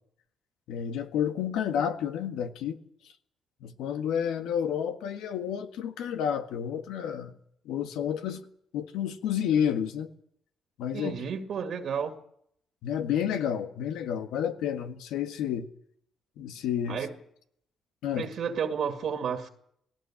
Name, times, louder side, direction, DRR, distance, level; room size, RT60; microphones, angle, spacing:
voice 1, 0.7-2.8 3.6-7.3 7.7-8.5 8.7-10.1 10.8-11.1 12.8-15.7 16.4-17.1 18.0-18.3, left 9 dB, 90° left, 8 dB, 1.6 m, -30 dB
voice 2, 10.9-12.2 16.9-17.1 18.2-19.5, right 7 dB, 65° right, 6 dB, 2.2 m, -31 dB
20.0 x 17.5 x 8.7 m, 0.71 s
cardioid pair, 90°, 0 cm